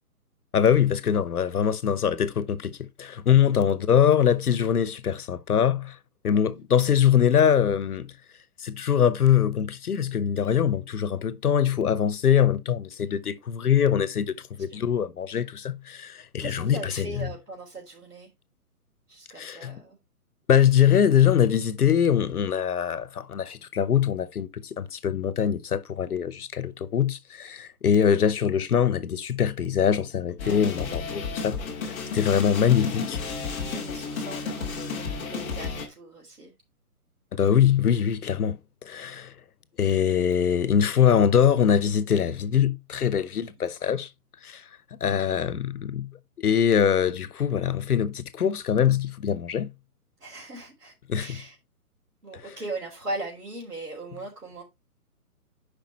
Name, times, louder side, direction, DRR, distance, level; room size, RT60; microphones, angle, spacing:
voice 1, 0.5-5.9 6.2-8.1 8.6-17.3 19.4-19.7 20.5-31.6 32.1-33.2 37.3-38.6 38.9-39.3 39.8-44.1 44.4-44.6 45.0-46.1 46.4-49.7 51.1-51.4, left 8 dB, 75° left, 1.0 m, -23 dB
voice 2, 16.4-18.3 19.1-20.0 30.4-30.8 33.6-36.5 43.4-43.5 45.3-45.5 50.2-51.6 52.2-54.6, right 2 dB, 80° right, 3.5 m, -39 dB
sound 1, 30.4-35.9, left 4 dB, 10° left, 0.6 m, -32 dB
10.5 x 5.2 x 2.9 m
hypercardioid pair, 145°, 46 cm